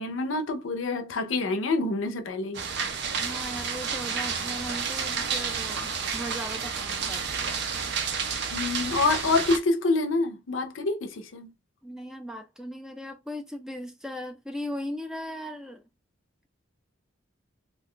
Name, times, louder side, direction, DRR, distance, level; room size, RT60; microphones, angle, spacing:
voice 1, 0.0-2.6 8.5-11.5, left 3 dB, 90° left, 0.6 m, -27 dB
sound 1, 2.5-9.6, right 6 dB, 60° right, 0.6 m, -30 dB
voice 2, 3.1-7.6 11.8-15.8, equal, 5° right, 0.4 m, -38 dB
2.5 x 2.2 x 3.7 m
head